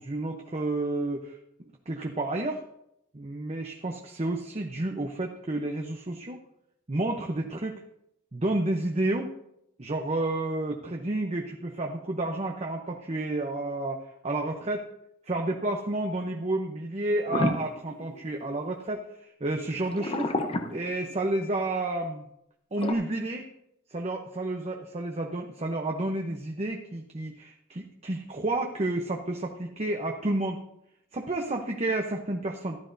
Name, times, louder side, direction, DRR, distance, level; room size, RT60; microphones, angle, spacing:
voice 1, 0.0-1.4 1.9-2.6 3.1-6.4 6.9-7.8 8.3-9.3 9.8-14.9 15.3-20.3 20.7-22.3 22.7-23.5 23.9-30.6 31.1-32.8, right 2 dB, 30° right, 2 dB, 0.8 m, -30 dB
sound 1, 17.3-18.7 19.8-21.5 22.8-22.9, left 1 dB, 30° left, 0.8 m, -30 dB
14.0 x 12.0 x 2.7 m, 0.78 s
head